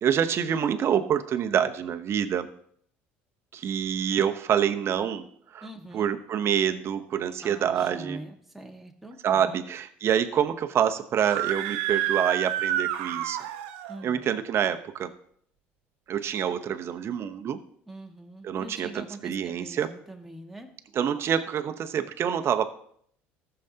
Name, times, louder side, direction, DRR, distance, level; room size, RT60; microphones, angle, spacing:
voice 1, 0.0-2.5 3.5-5.3 5.5-5.7 5.9-8.2 9.2-13.4 14.0-15.1 16.1-17.6 18.4-19.9 20.9-22.7, right 8 dB, 50° right, 8 dB, 0.9 m, -26 dB
voice 2, 5.6-6.1 7.4-9.6 13.9-14.2 17.9-20.7, right 1 dB, 5° right, 2 dB, 1.7 m, -43 dB
Screaming, 11.2-14.0, right 11 dB, 80° right, 0.6 m, -29 dB
15.0 x 6.8 x 2.8 m, 0.64 s
supercardioid pair, 80°, 6 cm